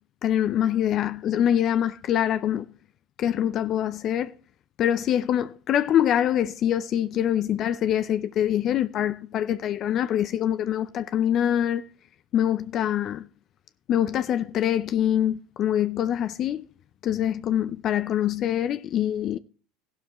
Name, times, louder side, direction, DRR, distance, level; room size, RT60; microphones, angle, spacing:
voice 1, 0.2-2.7 3.2-4.3 4.8-11.8 12.3-13.3 13.9-16.7 17.0-19.4, left 10 dB, 45° left, 0.5 m, -24 dB
13.5 x 12.0 x 3.0 m
hypercardioid pair, 95°, 0 cm